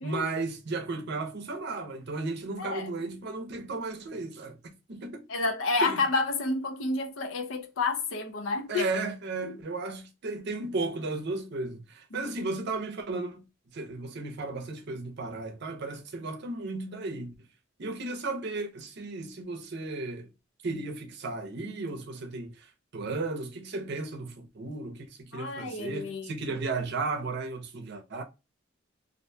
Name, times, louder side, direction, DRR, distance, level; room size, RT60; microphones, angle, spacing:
voice 1, 0.0-5.2 5.8-6.0 8.7-13.4 13.7-17.3 17.8-20.3 20.6-28.2, right 3 dB, 60° right, 0.6 m, -34 dB
voice 2, 2.6-2.9 5.3-8.8 9.4-9.5 12.1-12.2 25.3-26.6, left 3 dB, 80° left, 0.6 m, -30 dB
2.5 x 2.2 x 2.6 m
head